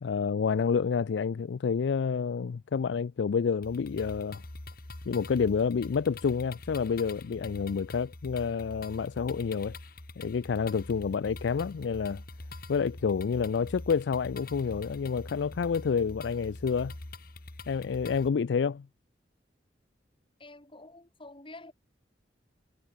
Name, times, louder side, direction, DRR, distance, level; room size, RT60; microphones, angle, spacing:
voice 1, 0.0-4.4 5.1-9.7 10.2-12.2 12.7-16.9 17.7-18.9, left 6 dB, 75° left, 0.4 m, -29 dB
sound 1, 3.6-18.3, left 2 dB, 55° left, 2.2 m, -45 dB
voice 2, 20.4-21.7, left 2 dB, 30° left, 5.9 m, -48 dB
head